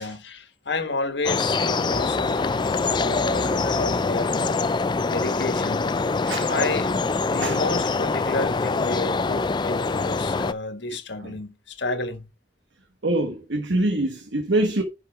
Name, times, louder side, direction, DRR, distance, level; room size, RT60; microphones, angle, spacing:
voice 1, 0.0-2.5 3.0-4.6 5.1-5.8 6.5-12.3, left 3 dB, 75° left, 1.4 m, -30 dB
sound 1, 1.2-10.5, left 4 dB, 25° left, 0.4 m, -24 dB
sound 2, 1.9-4.9, left 1 dB, 10° right, 2.0 m, -40 dB
voice 2, 13.0-14.8, right 2 dB, 80° right, 1.2 m, -24 dB
10.5 x 4.7 x 4.5 m
head